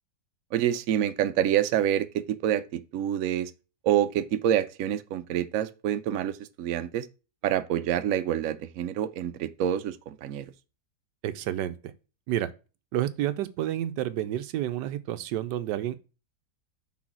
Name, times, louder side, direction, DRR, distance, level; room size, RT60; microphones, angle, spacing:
voice 1, 0.5-3.5 3.8-7.1 7.4-10.5, right 10 dB, 65° right, 0.9 m, -27 dB
voice 2, 11.2-11.9 12.3-12.5 12.9-16.0, right 12 dB, 85° right, 1.2 m, -30 dB
6.2 x 4.0 x 5.8 m
omnidirectional pair, 1.9 m